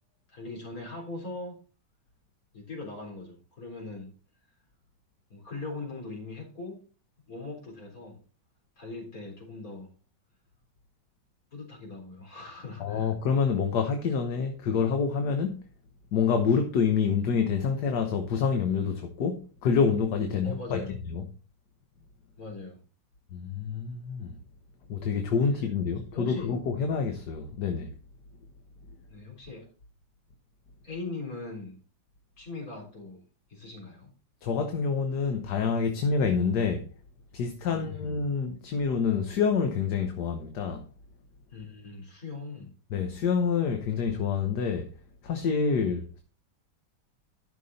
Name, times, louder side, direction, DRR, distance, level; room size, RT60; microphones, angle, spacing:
voice 1, 0.3-1.6 2.5-4.1 5.3-6.8 7.3-8.2 8.8-9.9 11.5-13.1 20.4-20.9 22.4-22.8 26.1-26.6 29.1-29.7 30.8-31.8 32.4-33.2 33.5-34.1 37.7-38.0 41.5-42.7, left 3 dB, 50° left, 4.3 m, -40 dB
voice 2, 12.8-15.6 16.1-20.8 21.1-21.2 23.3-24.4 24.9-27.9 34.4-36.8 37.3-40.9 42.9-44.9 45.2-46.2, left 6 dB, 70° left, 1.6 m, -27 dB
12.5 x 6.1 x 4.1 m
omnidirectional pair, 1.9 m